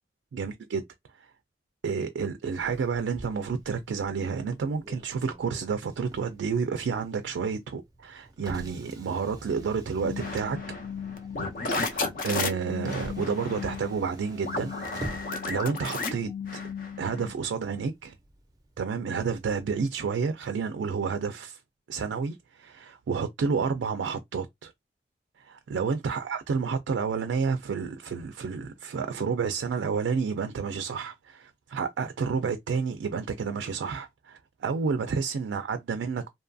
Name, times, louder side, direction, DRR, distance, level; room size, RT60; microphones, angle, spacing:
voice 1, 0.3-0.8 1.2-1.3 1.8-10.6 11.8-15.1 15.4-16.3 17.0-18.1 18.8-21.6 21.9-24.7 25.4-36.3, right 5 dB, 90° right, 0.3 m, -30 dB
Motor vehicle (road), 2.5-19.7, right 1 dB, 20° right, 0.4 m, -47 dB
sound 1, 10.0-17.3, left 4 dB, 50° left, 0.5 m, -33 dB
2.7 x 2.5 x 2.3 m
head